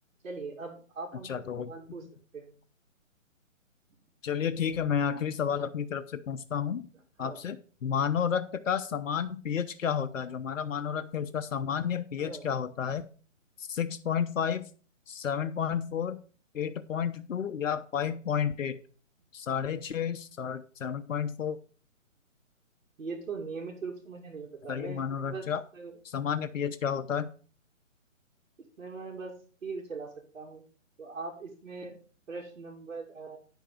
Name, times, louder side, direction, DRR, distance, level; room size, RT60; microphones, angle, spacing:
voice 1, 0.2-2.1 2.3-2.5 7.2-7.4 12.2-12.5 23.0-25.5 25.7-25.9 28.8-29.3 29.6-30.6 31.0-32.0 32.3-33.4, right 4 dB, 65° right, -2 dB, 2.5 m, -40 dB
voice 2, 1.2-1.7 4.2-6.9 7.2-13.1 13.6-14.7 15.1-16.2 16.5-18.8 19.3-21.6 24.7-25.6 26.0-27.3, left 8 dB, 70° left, 9 dB, 0.8 m, -31 dB
9.7 x 6.6 x 4.9 m, 0.40 s
hypercardioid pair, 155°, 39 cm